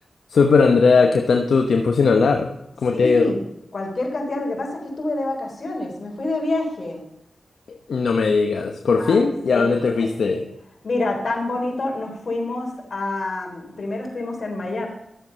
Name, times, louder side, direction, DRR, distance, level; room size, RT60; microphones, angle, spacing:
voice 1, 0.3-2.5 2.8-3.3 7.7-10.4, left 4 dB, 80° left, 4 dB, 0.9 m, -18 dB
voice 2, 2.9-3.4 3.7-7.0 9.0-9.2 9.5-9.9 10.2-10.4 10.8-14.9, left 2 dB, 60° left, 1 dB, 3.7 m, -27 dB
12.5 x 7.5 x 5.3 m, 0.82 s
cardioid pair, 50°, 0 cm